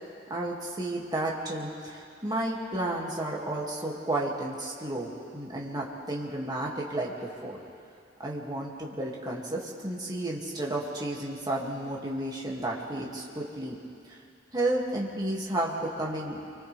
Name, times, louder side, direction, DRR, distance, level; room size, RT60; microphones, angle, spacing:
voice 1, 0.3-7.6 8.2-13.8 14.1-14.2 14.5-16.4, right 1 dB, 20° right, -4 dB, 2.4 m, -32 dB
30.0 x 24.5 x 3.5 m, 2.5 s
head